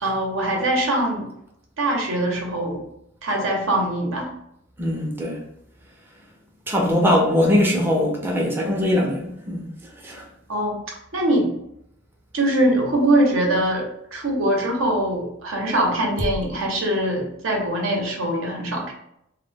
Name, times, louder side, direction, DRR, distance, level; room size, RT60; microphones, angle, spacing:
voice 1, 0.0-1.3 1.8-2.8 3.2-4.3 10.5-10.8 11.1-11.5 12.3-13.9 14.1-18.9, right 1 dB, 85° right, 0.7 m, -22 dB
voice 2, 4.8-5.4 6.7-9.7 10.0-10.2, left 1 dB, 10° right, 0.4 m, -21 dB
2.1 x 2.1 x 3.3 m
head